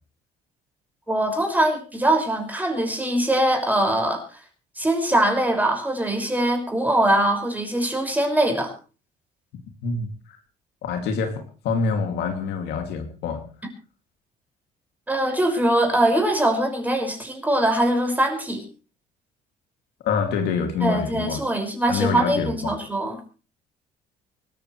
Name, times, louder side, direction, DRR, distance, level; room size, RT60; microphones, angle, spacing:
voice 1, 1.1-4.2 4.8-8.7 15.1-18.6 20.8-23.2, right 1 dB, 10° right, 2 dB, 5.8 m, -22 dB
voice 2, 9.8-10.4 10.8-13.4 20.0-21.4 21.9-22.7, left 5 dB, 80° left, 4 dB, 2.6 m, -26 dB
25.0 x 13.5 x 3.3 m, 0.35 s
cardioid pair, 110°, 17 cm